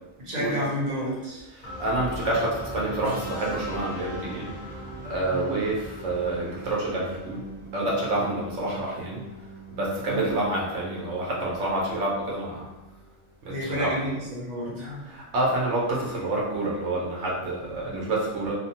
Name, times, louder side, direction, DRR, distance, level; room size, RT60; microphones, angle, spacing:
voice 1, 0.2-1.4 5.3-5.5 10.1-10.3 13.5-15.1, equal, 40° right, -5 dB, 0.9 m, -30 dB
voice 2, 1.5-4.5 5.0-7.4 7.7-9.2 9.7-12.7 13.4-14.0 15.1-18.5, right 2 dB, 85° right, -4 dB, 1.1 m, -28 dB
sound 1, 1.6-13.4, equal, 40° left, 0.8 m, -41 dB
sound 2, 3.0-5.3 6.6-6.8, right 3 dB, ahead, 0.8 m, -42 dB
2.8 x 2.1 x 2.8 m, 1.0 s
omnidirectional pair, 1.2 m